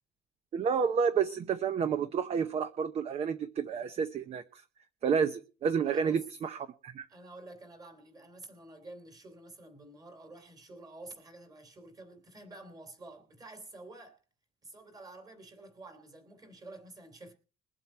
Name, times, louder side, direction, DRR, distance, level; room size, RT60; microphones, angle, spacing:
voice 1, 0.5-4.6 5.0-7.1, right 6 dB, 35° right, 0.8 m, -30 dB
voice 2, 5.8-6.2 7.1-14.2 14.6-17.3, right 2 dB, 20° right, 3.1 m, -50 dB
22.0 x 7.8 x 4.4 m
cardioid pair, 170°, 18 cm